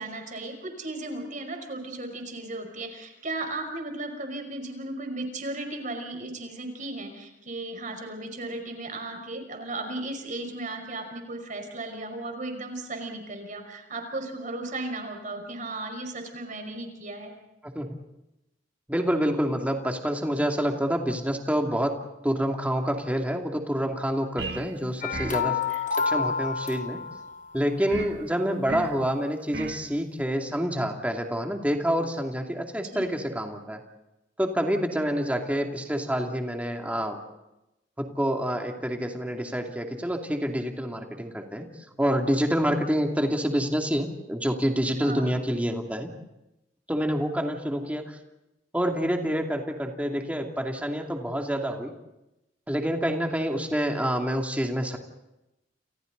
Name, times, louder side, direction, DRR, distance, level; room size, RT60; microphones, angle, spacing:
voice 1, 0.0-17.3 25.2-25.3 25.7-25.8 32.9-33.1 45.0-45.3, right 2 dB, 45° right, 5 dB, 5.4 m, -35 dB
voice 2, 18.9-25.5 26.0-27.0 27.5-33.8 34.4-37.2 38.0-41.7 42.0-46.1 46.9-48.2 48.7-51.9 52.7-55.0, equal, 10° right, 2 dB, 2.7 m, -27 dB
sound 1, 24.4-24.7 25.1-25.5 27.9-28.2 28.7-29.0 29.5-29.8, right 3 dB, 65° right, 1.7 m, -34 dB
sound 2, 25.0-27.5, left 5 dB, 45° left, 1.1 m, -28 dB
30.0 x 29.0 x 4.1 m, 0.93 s
head